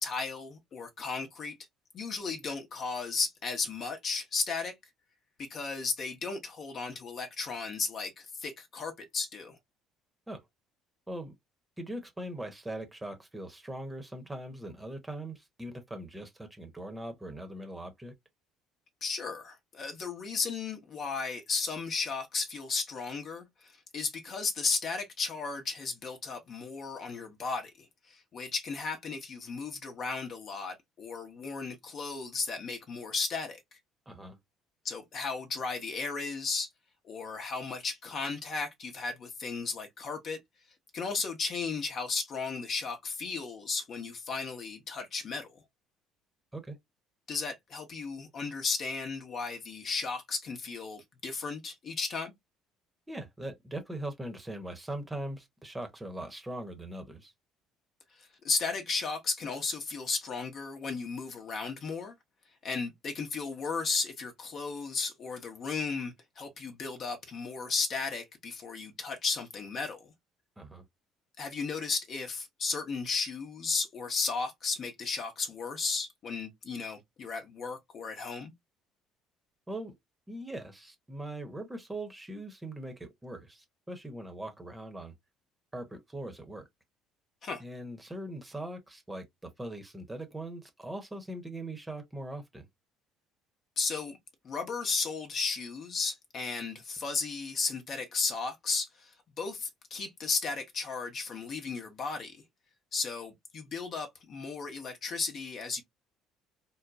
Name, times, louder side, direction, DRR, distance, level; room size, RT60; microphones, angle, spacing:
voice 1, 0.0-1.5 1.9-4.7 5.4-9.6 19.0-23.5 23.9-33.6 34.8-36.7 37.0-40.4 40.9-45.5 47.3-52.3 58.4-62.2 62.6-70.1 71.4-78.5 87.4-87.6 93.8-94.2 94.4-99.1 99.4-102.4 102.9-105.8, left 4 dB, 45° left, 0.9 m, -34 dB
voice 2, 11.8-18.1 34.1-34.4 46.5-46.8 53.1-57.3 70.6-70.8 79.7-79.9 80.3-85.1 85.7-86.7 87.6-92.7, right 1 dB, 10° right, 0.9 m, -41 dB
3.7 x 2.2 x 2.6 m
figure-of-eight pair, 55°, 0 cm